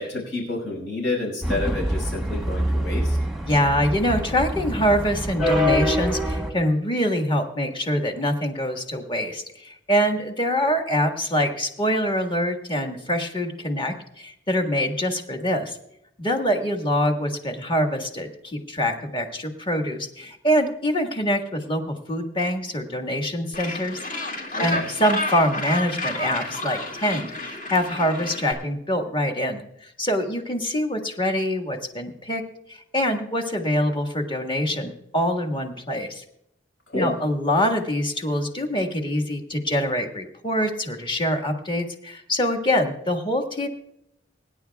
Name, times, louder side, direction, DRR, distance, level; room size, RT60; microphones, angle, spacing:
voice 1, 0.0-3.2 24.5-24.9 36.9-37.1, left 2 dB, 70° left, 0 dB, 5.4 m, -29 dB
sound 1, 1.4-6.5, equal, ahead, 1.2 m, -25 dB
voice 2, 3.4-15.8 16.2-24.0 24.6-32.4 32.7-36.2 36.9-43.7, equal, 25° left, 3 dB, 1.6 m, -24 dB
Gull seagull, 23.5-28.5, left 2 dB, 45° left, 2.1 m, -31 dB
24.5 x 10.5 x 2.3 m, 0.78 s
head